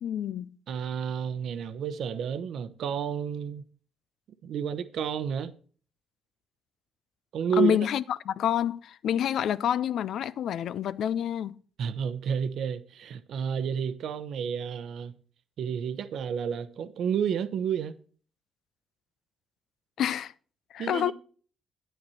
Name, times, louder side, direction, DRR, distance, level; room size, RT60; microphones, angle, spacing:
voice 1, 0.0-0.6 7.5-11.6 20.0-20.3 20.7-21.1, left 10 dB, 70° left, 0.4 m, -28 dB
voice 2, 0.7-3.6 4.4-5.6 7.3-7.8 11.8-15.1 15.6-18.0 20.8-21.1, right 7 dB, 70° right, 0.8 m, -31 dB
9.6 x 9.1 x 4.2 m
cardioid pair, 90°, 0 cm